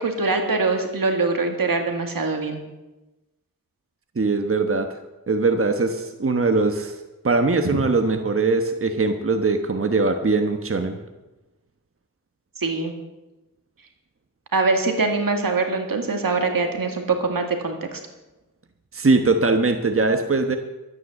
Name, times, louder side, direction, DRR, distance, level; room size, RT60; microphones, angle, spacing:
voice 1, 0.0-2.6 12.6-12.9 14.5-18.0, right 3 dB, 75° right, 4 dB, 2.2 m, -23 dB
voice 2, 4.2-4.9 5.3-7.0 7.2-11.0 18.9-20.6, right 3 dB, 40° right, 6 dB, 1.1 m, -21 dB
12.5 x 9.7 x 7.2 m, 1.0 s
cardioid pair, 55°, 34 cm